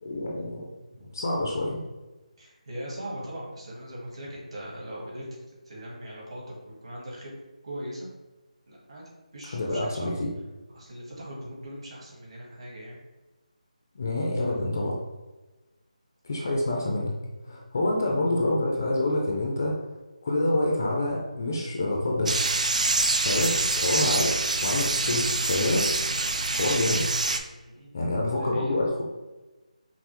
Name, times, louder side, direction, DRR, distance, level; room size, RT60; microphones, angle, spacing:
voice 1, 0.0-0.7 1.1-1.8 9.5-10.3 14.0-15.0 16.2-17.1 17.5-19.8 20.2-22.5 23.2-24.4 24.6-25.8 26.5-27.0 27.9-29.0, left 1 dB, 25° left, -1 dB, 0.4 m, -27 dB
voice 2, 2.4-5.3 5.6-7.4 7.6-8.1 8.7-9.0 9.3-10.1 10.7-13.0 17.4-17.7 27.6-27.9 28.4-28.7, equal, 45° right, -4 dB, 1.5 m, -40 dB
sound 1, 22.3-27.4, right 3 dB, 65° right, 0.4 m, -26 dB
5.5 x 2.0 x 3.0 m, 1.2 s
figure-of-eight pair, 175°, 4 cm